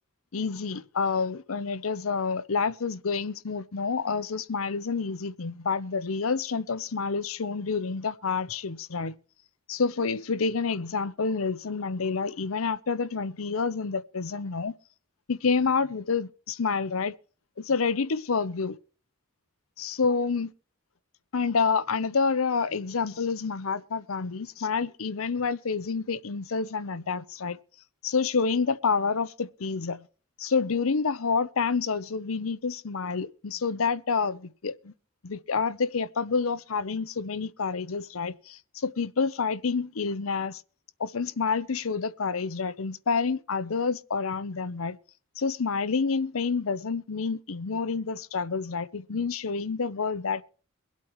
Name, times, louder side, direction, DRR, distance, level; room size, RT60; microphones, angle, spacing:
voice 1, 0.3-9.1 9.7-14.7 15.3-17.1 17.6-18.8 19.8-20.5 21.3-27.6 28.0-30.1 30.4-34.9 35.2-40.6 41.0-45.0 45.4-50.4, left 5 dB, 85° left, 0.7 m, -28 dB
23.5 x 8.4 x 3.1 m
head